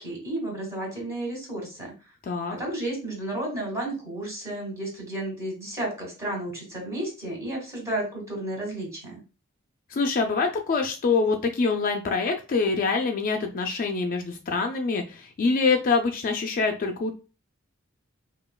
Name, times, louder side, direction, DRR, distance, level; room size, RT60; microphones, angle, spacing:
voice 1, 0.0-1.9 2.5-9.2, right 1 dB, 15° right, -3 dB, 1.9 m, -32 dB
voice 2, 2.2-2.5 9.9-17.1, left 4 dB, 40° left, 4 dB, 0.3 m, -25 dB
5.1 x 2.3 x 2.2 m, 0.33 s
head